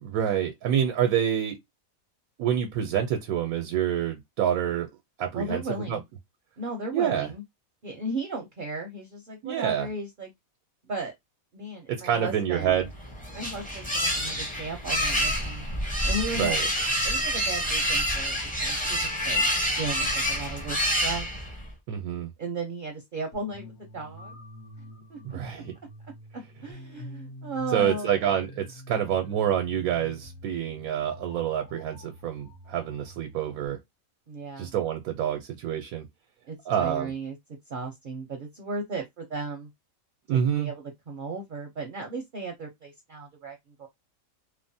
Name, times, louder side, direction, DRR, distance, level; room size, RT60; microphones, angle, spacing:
voice 1, 0.0-1.6 2.4-4.9 5.2-5.6 5.9-6.0 6.9-7.3 9.4-9.9 11.9-12.9 16.4-16.7 21.9-22.3 25.2-25.7 27.7-33.8 34.6-36.1 36.7-37.1 40.3-40.7, right 9 dB, 90° right, 1.0 m, -27 dB
voice 2, 5.3-6.0 6.6-7.4 7.8-10.3 10.9-11.1 11.5-12.9 13.3-15.7 16.0-16.6 17.0-19.5 19.7-21.3 22.4-24.3 25.1-25.4 26.6-28.2 34.3-34.7 36.5-37.4 37.7-39.7 40.3-43.9, right 2 dB, 50° right, 0.6 m, -35 dB
sound 1, 12.8-21.7, equal, 10° left, 0.6 m, -27 dB
sound 2, 23.3-33.7, left 1 dB, 75° left, 1.1 m, -46 dB
3.1 x 2.0 x 2.6 m
omnidirectional pair, 1.5 m